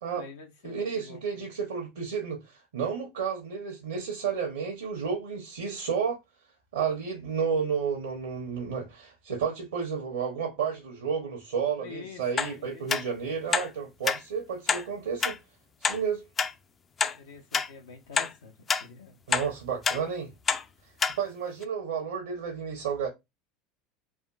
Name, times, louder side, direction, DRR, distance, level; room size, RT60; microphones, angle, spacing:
voice 1, 0.1-1.5 11.8-12.2 12.6-12.9 17.1-18.5 18.8-19.2, left 5 dB, 75° left, 0.6 m, -46 dB
voice 2, 0.6-6.2 6.7-15.4 15.8-16.3 19.3-20.3 21.2-23.1, right 6 dB, 75° right, 0.8 m, -31 dB
sound 1, 12.4-12.5 12.9-13.0 13.5-13.7 14.1-14.2 14.7-14.8 15.2-15.4 15.8-16.0 16.4-16.5 17.0-17.2 17.5-17.7 18.2-18.3 18.7-18.8 19.3-19.5 19.8-20.0 20.5-20.6 21.0-21.2 21.6-21.7, left 6 dB, 30° left, 0.4 m, -26 dB
3.5 x 2.5 x 2.3 m
hypercardioid pair, 75°, 0 cm